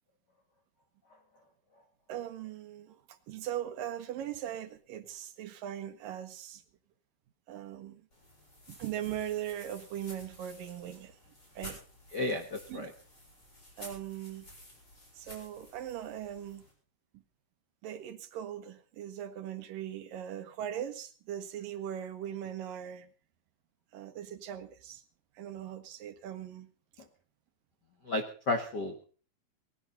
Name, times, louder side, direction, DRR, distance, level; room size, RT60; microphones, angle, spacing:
voice 1, 2.1-6.6 7.5-8.1 8.7-11.8 12.7-12.9 13.8-14.5 15.1-16.6 17.1-17.2 17.8-23.1 23.9-25.0 25.4-26.7 27.0-27.1, right 10 dB, 70° right, 2.6 m, -40 dB
sound 1, 8.1-16.7, equal, 25° left, 7.8 m, -52 dB
voice 2, 12.1-12.9 28.0-29.0, left 2 dB, 55° left, 1.2 m, -33 dB
19.5 x 16.5 x 4.0 m
omnidirectional pair, 4.4 m